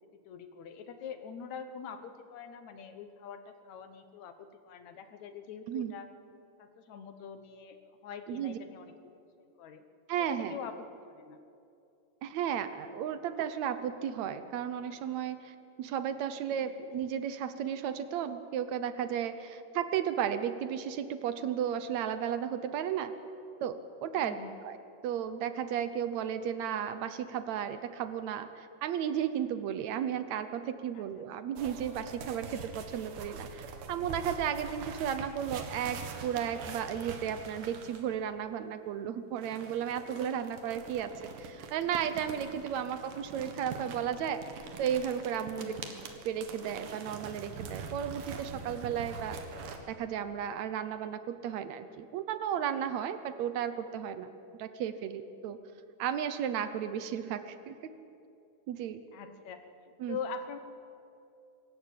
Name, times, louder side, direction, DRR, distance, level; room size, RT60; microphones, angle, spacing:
voice 1, 0.3-6.1 6.6-7.8 8.0-9.1 9.6-9.8 10.2-11.4 16.6-16.7 24.2-24.6 31.0-31.2 42.5-42.6 45.4-46.0 59.1-59.6 60.1-60.6, left 6 dB, 65° left, 9 dB, 2.3 m, -44 dB
voice 2, 8.3-8.6 10.1-10.6 12.2-23.1 23.6-41.1 41.4-44.4 44.8-45.7 46.2-49.4 49.9-54.3 54.6-55.6 56.0-57.9 58.7-59.0 60.0-60.2, right 9 dB, 70° right, 11 dB, 2.0 m, -34 dB
sound 1, 31.6-38.1 39.4-49.8, right 5 dB, 85° right, 3.2 m, -44 dB
24.5 x 14.0 x 8.7 m, 2.6 s
omnidirectional pair, 3.7 m